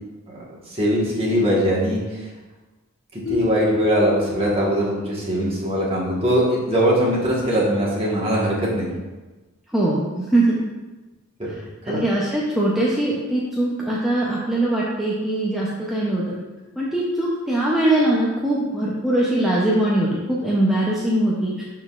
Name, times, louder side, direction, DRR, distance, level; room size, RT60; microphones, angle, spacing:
voice 1, 0.7-2.3 3.1-8.9 11.4-11.5 11.9-12.0, equal, 25° right, -5 dB, 1.4 m, -21 dB
sound 1, 3.3-5.4, left 1 dB, 40° left, 1.0 m, -30 dB
voice 2, 9.7-10.6 11.9-16.4 16.8-21.5, right 1 dB, ahead, -7 dB, 0.6 m, -21 dB
11.0 x 3.8 x 2.4 m, 1.2 s
head